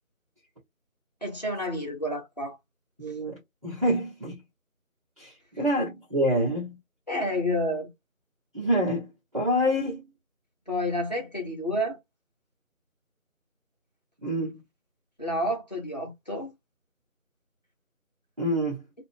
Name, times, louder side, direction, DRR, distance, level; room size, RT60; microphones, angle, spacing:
voice 1, 1.2-2.6 7.1-7.9 10.7-12.0 15.2-16.5, left 1 dB, 30° left, 1.0 m, -29 dB
voice 2, 3.0-4.4 5.2-6.7 8.5-9.1 9.3-10.0 14.2-14.6 18.4-18.8, equal, 25° right, 1.2 m, -27 dB
2.5 x 2.5 x 3.5 m
figure-of-eight pair, 170°, 42 cm